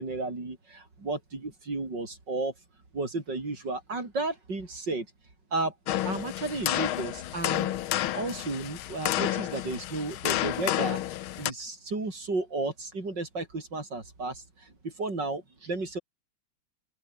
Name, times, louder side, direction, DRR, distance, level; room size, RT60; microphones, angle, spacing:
voice 1, 0.0-2.5 2.9-5.1 5.5-5.7 6.0-7.7 8.1-11.0 11.4-16.0, right 3 dB, 55° right, 5.5 m, -33 dB
sound 1, 5.9-11.5, left 13 dB, 85° left, 1.7 m, -30 dB
open air
omnidirectional pair, 2.3 m